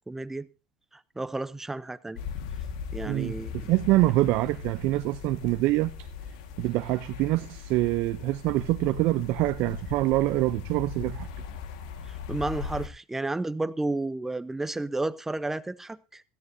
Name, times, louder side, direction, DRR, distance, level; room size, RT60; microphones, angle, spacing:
voice 1, 0.1-0.5 1.2-2.2 2.9-3.8 12.0-16.2, right 2 dB, 10° right, 0.6 m, -32 dB
sound 1, 2.2-12.9, left 6 dB, 90° left, 1.7 m, -39 dB
voice 2, 3.1-6.1 6.6-11.3, right 18 dB, 65° right, 0.5 m, -25 dB
17.0 x 13.5 x 2.7 m
supercardioid pair, 115°, 4 cm